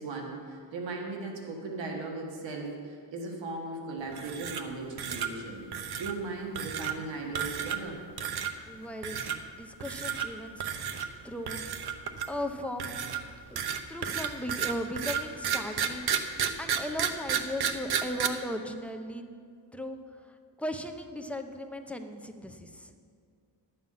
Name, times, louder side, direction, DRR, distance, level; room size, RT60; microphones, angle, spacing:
voice 1, 0.0-8.1, right 3 dB, 90° right, 1 dB, 1.7 m, -38 dB
sound 1, 4.1-4.7 5.0-5.3 5.7-6.1 6.6-6.9 7.3-7.9 8.2-8.5 9.0-9.4 9.8-10.3 10.6-11.1 11.5-12.4 12.8-18.3, right 8 dB, 60° right, 0.8 m, -31 dB
voice 2, 8.7-10.6 11.2-11.6 12.0-12.9 13.5-13.6 13.9-19.3 19.7-22.9, left 1 dB, 5° left, 5 dB, 0.6 m, -37 dB
11.0 x 7.6 x 5.6 m, 2.3 s
cardioid pair, 125°, 43 cm